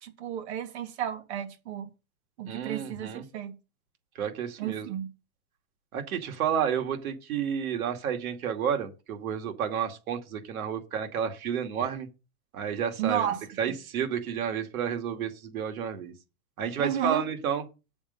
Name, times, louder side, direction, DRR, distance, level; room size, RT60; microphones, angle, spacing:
voice 1, 0.0-1.9 2.4-3.6 4.6-5.1 13.0-13.4 16.8-17.3, right 10 dB, 50° right, 2.1 m, -32 dB
voice 2, 2.5-3.2 4.2-4.9 5.9-12.1 12.5-13.3 13.6-16.1 16.6-17.6, right 8 dB, 80° right, 2.5 m, -31 dB
8.9 x 7.2 x 5.4 m
supercardioid pair, 170°, 43 cm